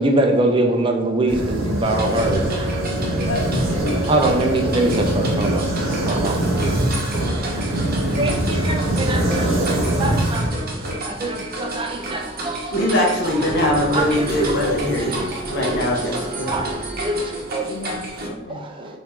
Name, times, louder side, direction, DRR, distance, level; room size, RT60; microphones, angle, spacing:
voice 1, 0.0-3.3 4.1-7.0 7.4-10.5 11.0-12.8 13.3-13.4 13.9-14.5 14.9-16.2 16.4-17.7 18.5-19.0, right 2 dB, 25° right, 2 dB, 0.5 m, -24 dB
sound 1, 1.3-10.9, right 1 dB, 80° right, 1.2 m, -23 dB
sound 2, 1.8-18.3, right 1 dB, 45° right, 0.9 m, -30 dB
voice 2, 3.3-4.1 17.7-19.0, left 2 dB, 75° left, 3 dB, 0.5 m, -31 dB
voice 3, 12.7-15.1 15.5-16.5, equal, 55° left, -1 dB, 1.1 m, -21 dB
4.3 x 2.7 x 4.2 m, 1.1 s
head